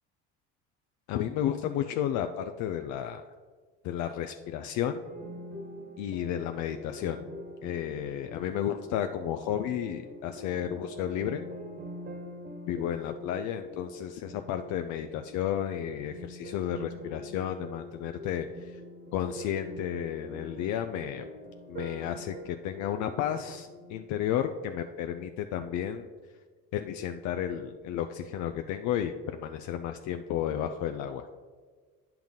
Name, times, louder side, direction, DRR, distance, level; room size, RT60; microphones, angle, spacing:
voice 1, 1.1-3.2 3.8-5.0 6.0-7.3 7.6-11.4 12.7-18.8 19.1-21.3 21.7-26.1 26.7-31.3, left 10 dB, 65° left, 7 dB, 0.5 m, -32 dB
sound 1, 5.0-24.0, equal, 30° right, 1.3 m, -45 dB
8.9 x 5.9 x 3.6 m, 1.5 s
cardioid pair, 110°, 31 cm